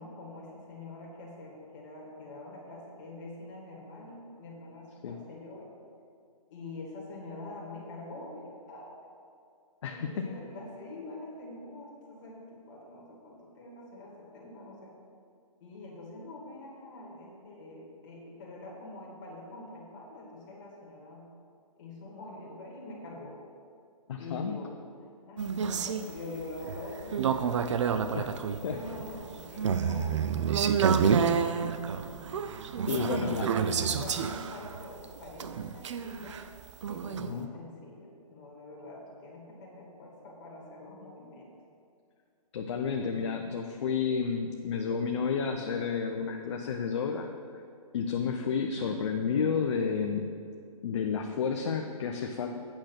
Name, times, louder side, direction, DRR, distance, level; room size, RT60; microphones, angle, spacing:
voice 1, 0.0-5.7 6.5-9.1 9.9-14.9 15.6-21.3 21.8-23.4 24.1-28.0 28.6-32.1 32.7-36.4 36.9-41.5, left 2 dB, 30° left, -3 dB, 2.3 m, -45 dB
voice 2, 9.8-10.2 24.1-24.6 28.1-28.3 28.6-28.8 32.9-33.5 37.2-37.5 42.5-47.3 47.9-50.3 50.8-52.5, left 6 dB, 50° left, 3 dB, 0.7 m, -31 dB
sound 1, 25.4-37.3, right 6 dB, 50° right, 0.5 m, -29 dB
8.9 x 6.5 x 5.9 m, 2.4 s
hypercardioid pair, 155°, 19 cm